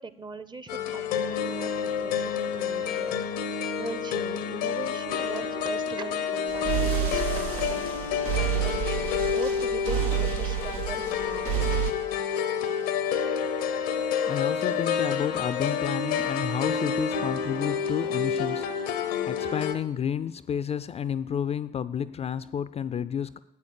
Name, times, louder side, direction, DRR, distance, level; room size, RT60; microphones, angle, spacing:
voice 1, 0.0-3.2 3.8-7.9 8.4-11.5, right 3 dB, 25° right, 0.7 m, -40 dB
sound 1, 0.7-19.7, left 7 dB, 80° left, 0.7 m, -29 dB
sound 2, 6.5-11.9, right 11 dB, 85° right, 0.7 m, -29 dB
voice 2, 14.3-23.4, left 8 dB, 35° left, 0.4 m, -31 dB
8.3 x 6.5 x 6.6 m
hypercardioid pair, 50°, 17 cm